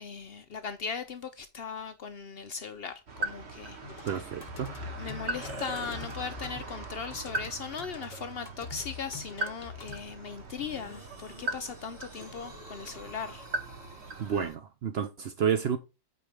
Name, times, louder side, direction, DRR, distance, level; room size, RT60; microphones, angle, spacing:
voice 1, 0.0-4.3 5.0-13.5, left 6 dB, 80° left, 0.5 m, -39 dB
sound 1, 3.1-14.5, right 2 dB, 45° right, 1.3 m, -40 dB
sound 2, 3.8-10.0, left 5 dB, 40° left, 0.7 m, -44 dB
voice 2, 4.0-4.7 14.2-15.8, right 7 dB, 80° right, 0.5 m, -30 dB
sound 3, 5.4-6.7 7.3-7.4 10.6-14.6, equal, 25° right, 2.1 m, -47 dB
8.6 x 4.7 x 3.4 m
omnidirectional pair, 1.8 m